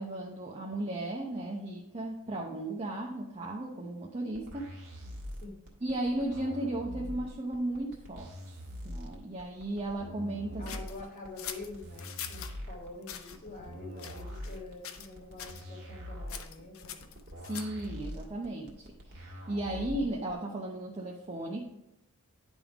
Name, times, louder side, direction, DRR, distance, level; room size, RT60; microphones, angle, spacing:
voice 1, 0.0-4.7 5.8-8.6 8.8-10.6 17.4-21.6, right 1 dB, 30° right, -1 dB, 0.7 m, -35 dB
sound 1, 4.3-20.3, equal, 50° right, 1.7 m, -43 dB
sound 2, 10.6-12.5 13.0-13.4 14.0-14.6 14.8-15.1 15.4-15.6 16.3-17.9, left 9 dB, 65° left, 0.7 m, -43 dB
voice 2, 10.6-17.1, left 2 dB, 35° left, 0 dB, 1.6 m, -46 dB
10.5 x 3.6 x 4.8 m, 0.90 s
head